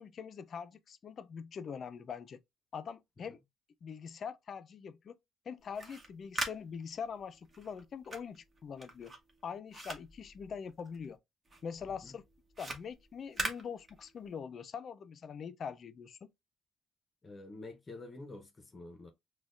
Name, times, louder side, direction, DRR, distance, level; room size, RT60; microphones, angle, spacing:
voice 1, 0.0-2.4 2.7-3.4 3.8-5.2 5.5-9.1 9.4-11.2 11.6-12.2 12.6-16.3, left 6 dB, 55° left, 0.4 m, -43 dB
sound 1, 5.6-11.1 11.5-14.4, right 2 dB, 35° right, 1.0 m, -42 dB
voice 2, 17.2-19.1, left 2 dB, 30° left, 0.7 m, -48 dB
6.0 x 2.2 x 2.4 m
cardioid pair, 90°, 0 cm